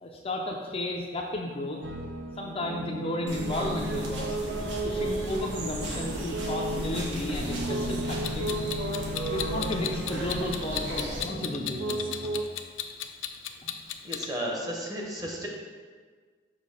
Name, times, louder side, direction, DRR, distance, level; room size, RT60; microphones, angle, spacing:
voice 1, 0.0-1.8 2.4-4.4 4.8-8.5 9.3-12.0 13.6-13.7, left 1 dB, 30° left, 0 dB, 0.5 m, -33 dB
sound 1, 1.8-12.4, right 1 dB, 70° right, 0.5 m, -34 dB
sound 2, 3.3-11.3, right 1 dB, 90° right, 1.2 m, -36 dB
Clock, 8.2-14.3, left 11 dB, 90° left, 0.4 m, -34 dB
voice 2, 14.0-15.5, equal, 20° right, -1 dB, 0.9 m, -33 dB
6.4 x 2.8 x 5.3 m, 1.5 s
head